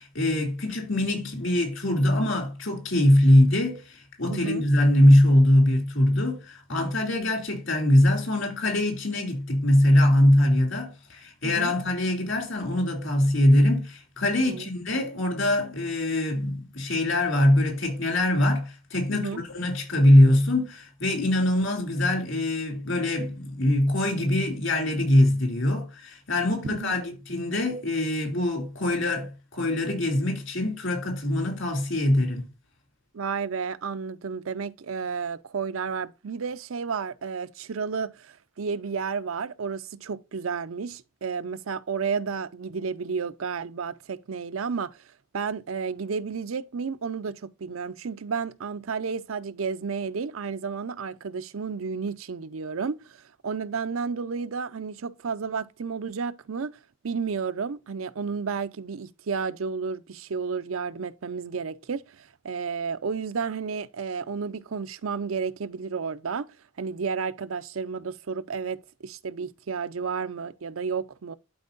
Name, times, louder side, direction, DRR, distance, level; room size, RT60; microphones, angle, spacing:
voice 1, 0.0-32.5, left 1 dB, 65° left, 2.9 m, -22 dB
voice 2, 4.3-4.7 11.4-11.7 14.5-14.7 19.2-19.4 26.6-27.2 33.1-45.0 45.3-53.2 53.4-56.8 57.0-71.3, right 5 dB, 85° right, 0.6 m, -32 dB
12.0 x 4.5 x 2.5 m
head